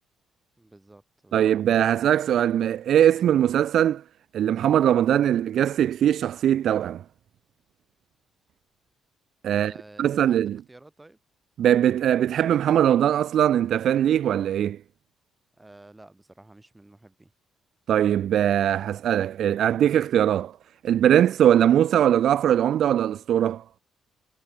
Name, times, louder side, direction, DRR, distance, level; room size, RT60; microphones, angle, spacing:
voice 1, 0.6-1.5 9.5-11.2 15.6-17.3, right 2 dB, 15° right, 7.8 m, -50 dB
voice 2, 1.3-4.0 4.3-7.0 9.4-9.7 10.0-10.6 11.6-14.8 17.9-20.5 20.8-23.6, right 10 dB, 70° right, 0.5 m, -21 dB
cardioid pair, 90°, 0 cm